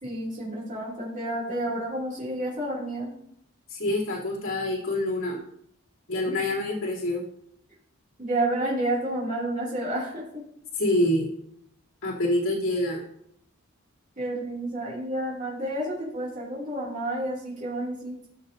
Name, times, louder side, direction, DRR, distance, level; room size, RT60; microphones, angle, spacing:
voice 1, 0.0-3.2 6.2-6.4 8.2-10.2 14.2-18.1, right 1 dB, 35° right, -5 dB, 2.6 m, -30 dB
voice 2, 3.7-5.4 6.1-7.2 10.8-11.3 12.0-13.0, left 1 dB, 65° left, -9 dB, 2.9 m, -26 dB
13.5 x 6.5 x 2.6 m, 0.72 s
head